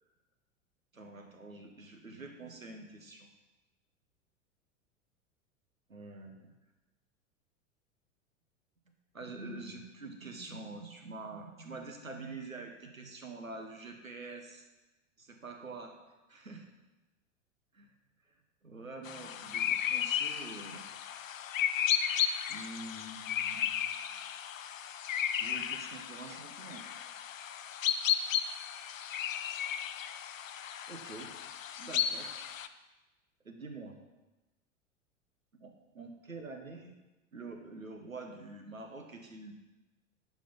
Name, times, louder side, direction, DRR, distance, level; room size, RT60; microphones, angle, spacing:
voice 1, 0.9-3.3 5.9-6.5 9.1-14.7 15.2-15.9 16.3-16.7 17.8-17.9 18.6-20.8 22.1-22.2 22.5-24.1 25.3-26.9 30.9-31.3 31.8-32.3 33.4-34.0 35.6-36.9 37.3-39.5, right 3 dB, 90° right, 4 dB, 1.3 m, -46 dB
sound 1, 19.1-32.7, left 9 dB, 75° left, 0.6 m, -34 dB
11.5 x 4.9 x 5.4 m, 1.1 s
figure-of-eight pair, 90°, 40 cm